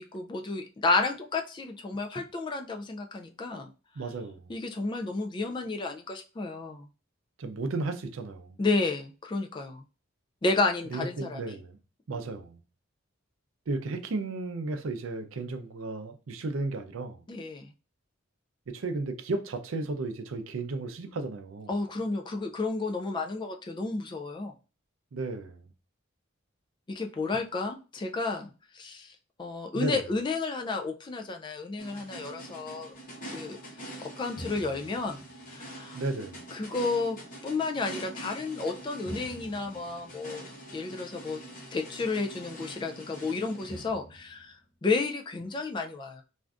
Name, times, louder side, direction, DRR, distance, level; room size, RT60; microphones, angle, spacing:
voice 1, 0.0-3.7 4.5-6.9 8.6-9.8 10.4-11.6 12.1-12.2 17.3-17.7 21.7-24.5 26.9-32.9 33.3-36.0 36.5-41.4 41.7-46.2, left 3 dB, 25° left, 0.3 m, -32 dB
voice 2, 4.0-4.5 7.4-8.6 10.9-11.8 12.1-12.6 13.7-17.2 18.7-21.7 25.1-25.6 29.7-30.0 35.9-36.4, right 3 dB, 75° right, 0.5 m, -34 dB
sound 1, 31.8-44.5, right 1 dB, 40° left, 0.9 m, -44 dB
3.4 x 2.5 x 2.4 m
head